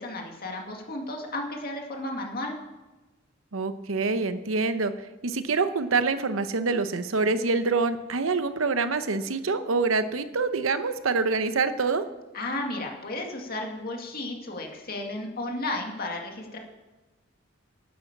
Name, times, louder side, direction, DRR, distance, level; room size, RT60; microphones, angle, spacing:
voice 1, 0.0-2.6 12.3-16.6, left 2 dB, 50° left, 2 dB, 2.2 m, -33 dB
voice 2, 3.5-4.9 5.2-12.0, right 4 dB, 90° right, 11 dB, 0.9 m, -26 dB
11.0 x 9.4 x 7.2 m, 1.2 s
head